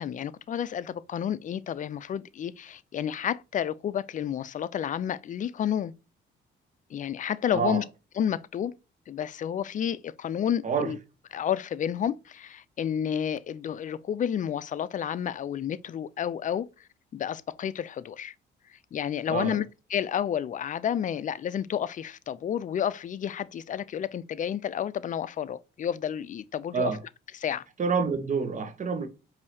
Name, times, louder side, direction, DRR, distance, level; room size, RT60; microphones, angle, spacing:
voice 1, 0.0-5.9 6.9-7.8 8.2-8.7 9.1-11.0 11.3-18.3 18.9-19.6 19.9-26.9 27.4-27.7, left 9 dB, 40° left, 0.4 m, -30 dB
voice 2, 7.5-7.8 10.6-10.9 19.3-19.6 26.7-27.0 27.8-29.1, right 5 dB, 40° right, 1.0 m, -28 dB
4.9 x 2.7 x 2.8 m
cardioid pair, 90°, 20 cm